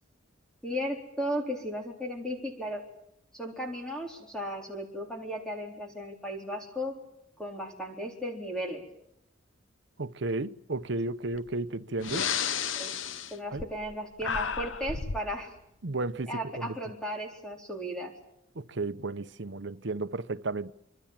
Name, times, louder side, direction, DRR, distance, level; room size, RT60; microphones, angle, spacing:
voice 1, 0.6-2.8 3.3-7.0 7.4-8.8 12.6-13.0 13.3-15.5 16.3-18.1, equal, 5° left, 4.0 m, -35 dB
voice 2, 10.0-12.3 13.5-13.6 15.8-16.3 16.6-16.8 18.6-20.7, right 2 dB, 65° right, 0.9 m, -33 dB
Breathing, 11.3-11.5 12.0-13.9 14.2-15.3, left 6 dB, 85° left, 1.0 m, -32 dB
26.0 x 25.0 x 7.4 m
head